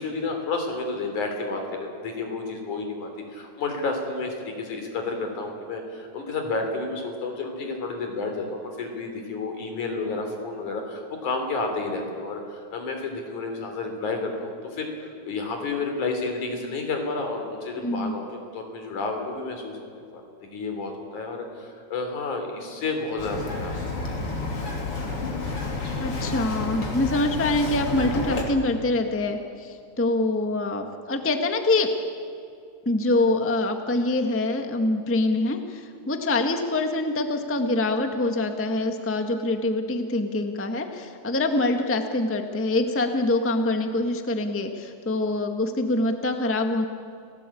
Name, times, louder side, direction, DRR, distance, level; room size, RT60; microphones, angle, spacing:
voice 1, 0.0-18.2 18.5-19.9 20.5-23.9, left 3 dB, 85° left, 4 dB, 4.8 m, -31 dB
voice 2, 17.8-18.1 26.0-31.9 32.8-46.8, left 2 dB, 10° left, 5 dB, 0.8 m, -25 dB
Bird vocalization bird call bird song, 23.2-28.4, left 3 dB, 50° left, 3.8 m, -30 dB
30.0 x 17.5 x 8.5 m, 2.4 s
omnidirectional pair, 3.4 m